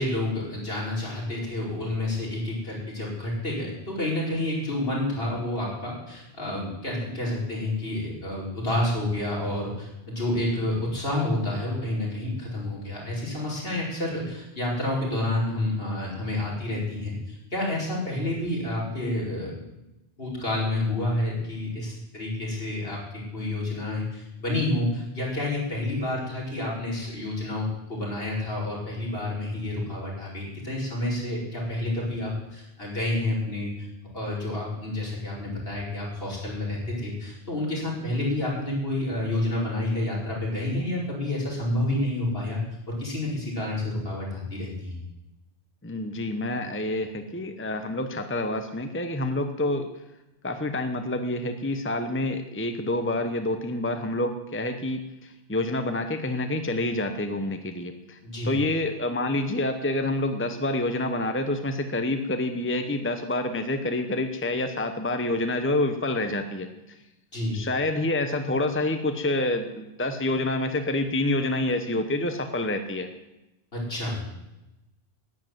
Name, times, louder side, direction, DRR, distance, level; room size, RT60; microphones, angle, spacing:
voice 1, 0.0-19.6 20.2-33.9 34.1-42.6 42.9-45.0 58.2-58.6 67.3-67.6 73.7-74.2, left 1 dB, 65° left, -5 dB, 5.3 m, -29 dB
voice 2, 45.8-49.9 50.4-58.2 58.4-66.7 67.5-73.1, left 2 dB, 10° left, 7 dB, 0.9 m, -27 dB
11.0 x 10.5 x 9.4 m, 0.96 s
omnidirectional pair, 1.1 m